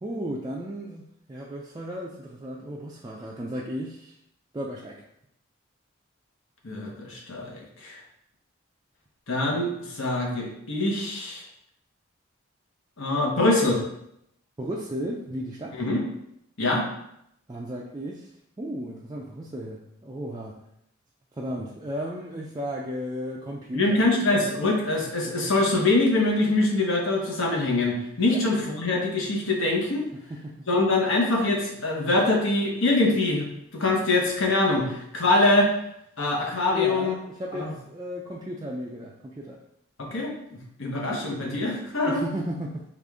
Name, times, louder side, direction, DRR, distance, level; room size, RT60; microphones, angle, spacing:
voice 1, 0.0-4.2 4.5-5.0 14.6-15.8 17.5-18.3 18.6-20.6 21.4-24.1 28.3-28.4 30.3-30.5 36.7-39.6 42.1-42.8, equal, 20° right, -3 dB, 0.3 m, -34 dB
voice 2, 6.6-8.0 9.3-11.4 13.0-13.8 15.8-16.0 16.6-16.8 23.7-30.0 30.7-35.7 36.2-37.1 37.5-37.7 40.0-42.2, left 2 dB, 75° left, -1 dB, 1.1 m, -24 dB
4.9 x 2.5 x 3.5 m, 0.77 s
head